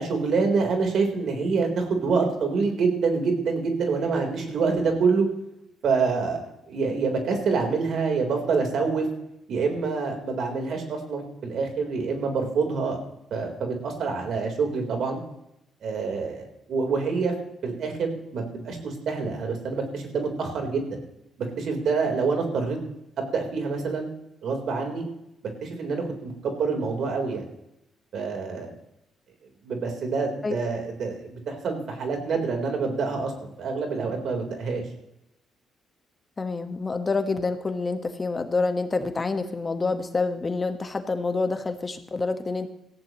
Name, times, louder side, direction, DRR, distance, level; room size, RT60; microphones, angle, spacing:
voice 1, 0.0-5.3 5.8-6.4 6.7-9.1 9.5-13.0 13.3-15.2 15.8-17.3 17.6-21.0 21.6-22.8 23.2-24.1 24.4-25.0 25.6-27.5 28.1-28.7 29.6-34.8, right 4 dB, 65° right, 2 dB, 3.9 m, -26 dB
voice 2, 36.4-42.7, left 3 dB, 30° left, 7 dB, 1.4 m, -27 dB
18.0 x 15.0 x 3.1 m, 0.85 s
cardioid pair, 90°, 0 cm